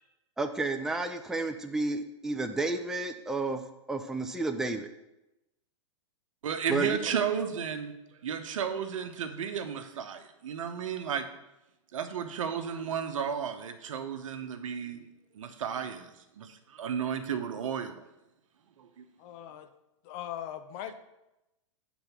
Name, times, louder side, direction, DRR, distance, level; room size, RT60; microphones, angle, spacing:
voice 1, 0.4-3.6 3.9-4.9 6.7-7.0, right 3 dB, 5° right, 6 dB, 0.5 m, -31 dB
voice 2, 6.4-7.9 8.2-11.3 11.9-15.1 15.3-18.0 18.8-19.0, right 7 dB, 75° right, 8 dB, 1.0 m, -33 dB
voice 3, 19.2-19.7 20.1-20.9, left 11 dB, 45° left, 10 dB, 0.7 m, -39 dB
7.9 x 4.0 x 6.0 m, 0.93 s
hypercardioid pair, 125°, 17 cm